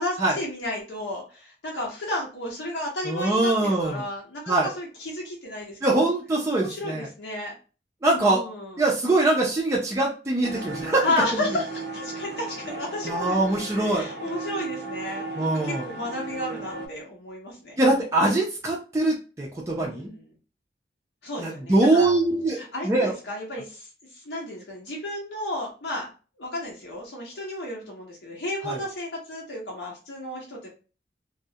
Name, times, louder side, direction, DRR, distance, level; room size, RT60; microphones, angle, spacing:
voice 1, 0.0-6.0 6.6-7.5 8.1-8.8 11.0-17.8 19.8-20.3 21.2-22.1 22.5-26.1 26.4-30.7, left 1 dB, 85° left, -3 dB, 0.7 m, -33 dB
voice 2, 3.1-4.0 4.5-4.7 5.8-7.1 8.0-8.4 8.8-11.1 13.0-14.1 15.4-15.8 17.8-20.1 21.4-22.6 22.8-23.1 28.6-28.8, right 2 dB, 15° right, -3 dB, 0.4 m, -23 dB
sound 1, 10.4-16.9, right 3 dB, 75° right, 0.6 m, -35 dB
2.3 x 2.0 x 2.6 m, 0.34 s
head